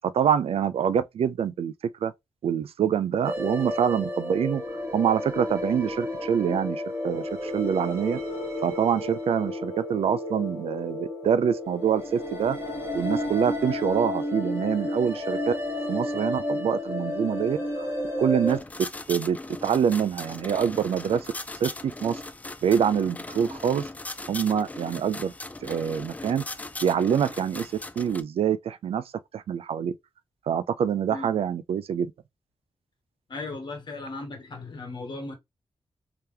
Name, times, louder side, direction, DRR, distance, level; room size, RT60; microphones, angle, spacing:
voice 1, 0.0-1.7 2.0-2.1 2.4-4.6 4.9-8.2 8.6-12.6 12.9-15.5 15.9-17.9 18.2-18.6 19.1-21.3 21.6-22.2 22.6-23.9 24.3-25.3 25.6-26.4 26.8-29.0 29.3-29.9 30.5-32.1, right 8 dB, 75° right, 0.4 m, -25 dB
sound 1, 3.2-18.6, left 1 dB, 25° right, 2.1 m, -32 dB
sound 2, 18.5-28.2, left 2 dB, 15° left, 0.3 m, -38 dB
voice 2, 33.3-35.3, left 3 dB, 50° left, 1.2 m, -36 dB
3.4 x 2.9 x 3.3 m
wide cardioid pair, 120°, 10 cm